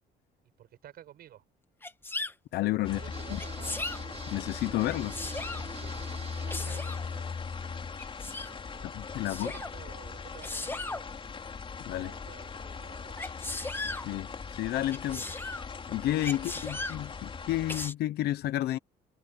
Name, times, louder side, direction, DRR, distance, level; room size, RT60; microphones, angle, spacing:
voice 1, 0.6-1.4 2.9-3.9 5.8-7.3 8.4-11.1 12.0-13.2 13.6-13.7 15.0-15.2 16.3-16.8, right 12 dB, 65° right, 7.8 m, -52 dB
Sneeze, 1.8-2.3 3.4-4.0 4.9-5.7 6.5-7.0 8.0-8.5 9.2-9.7 10.4-11.0 13.2-14.1 14.9-15.6 16.2-17.0 17.7-17.9, left 2 dB, 15° left, 1.9 m, -37 dB
voice 2, 2.5-3.0 3.3-3.4 4.3-5.2 8.8-9.5 11.9-12.1 14.0-15.2 15.9-18.8, left 14 dB, 70° left, 0.9 m, -31 dB
sound 1, 2.8-17.9, left 5 dB, 30° left, 4.7 m, -40 dB
sound 2, 3.1-8.1, right 6 dB, 40° right, 6.3 m, -48 dB
cardioid pair, 110°, 17 cm